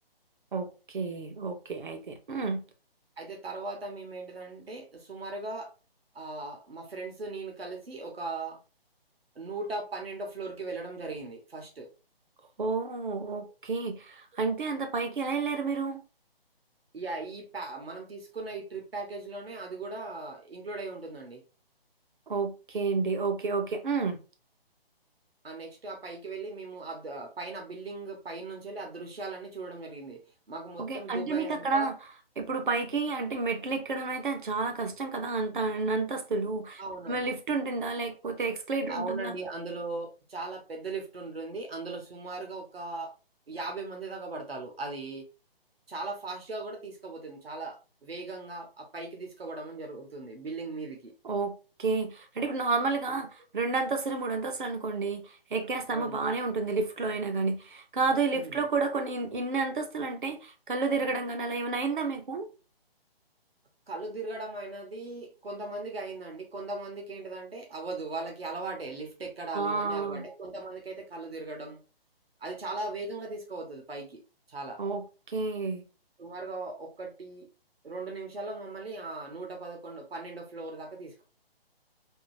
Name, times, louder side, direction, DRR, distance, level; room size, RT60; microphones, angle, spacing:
voice 1, 0.5-2.6 12.6-16.0 22.3-24.2 30.8-31.9 32.4-36.8 37.1-39.3 51.2-51.5 51.8-62.5 69.5-70.2 74.8-75.8, right 4 dB, 55° right, 0.8 m, -30 dB
voice 2, 3.2-5.7 6.1-8.6 9.3-11.9 16.9-21.4 25.4-31.9 36.8-37.3 38.9-43.1 43.5-45.3 45.9-51.1 55.9-56.2 58.3-58.7 63.9-71.8 72.4-74.2 74.5-74.8 76.2-77.5 77.8-81.2, right 3 dB, 75° right, 1.0 m, -38 dB
3.7 x 2.4 x 2.7 m
figure-of-eight pair, 145°, 30 cm